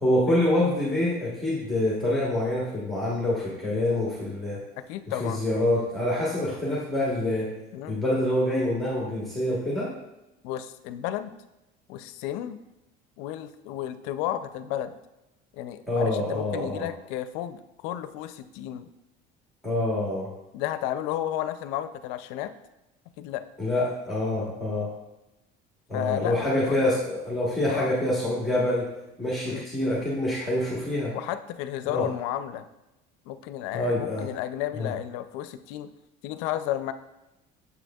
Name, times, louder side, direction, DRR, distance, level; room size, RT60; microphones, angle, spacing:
voice 1, 0.0-4.6 5.1-7.5 7.9-9.9 15.9-16.9 19.6-20.3 23.6-24.9 25.9-28.9 29.2-31.1 31.9-32.1 33.7-34.3 34.8-34.9, left 1 dB, ahead, -6 dB, 1.2 m, -26 dB
voice 2, 4.9-5.5 7.7-8.0 10.4-11.3 11.9-12.6 13.2-15.0 15.5-18.9 20.5-22.5 23.2-23.4 25.9-27.0 27.7-27.9 29.4-29.6 31.1-32.7 33.3-35.9 36.2-36.9, left 12 dB, 90° left, 11 dB, 0.5 m, -32 dB
7.2 x 6.2 x 2.3 m, 0.96 s
cardioid pair, 160°, 19 cm